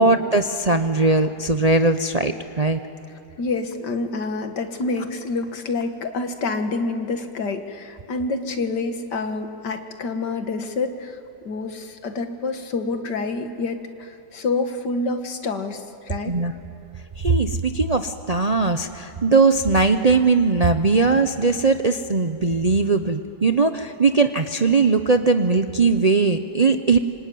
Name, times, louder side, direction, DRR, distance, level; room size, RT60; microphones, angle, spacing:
voice 1, 0.0-2.8 16.3-16.5 17.2-27.0, right 3 dB, 40° right, 7 dB, 0.6 m, -19 dB
voice 2, 3.4-11.2 11.4-16.3, left 3 dB, 80° left, 7 dB, 2.2 m, -27 dB
25.5 x 25.0 x 9.3 m, 2.6 s
omnidirectional pair, 1.8 m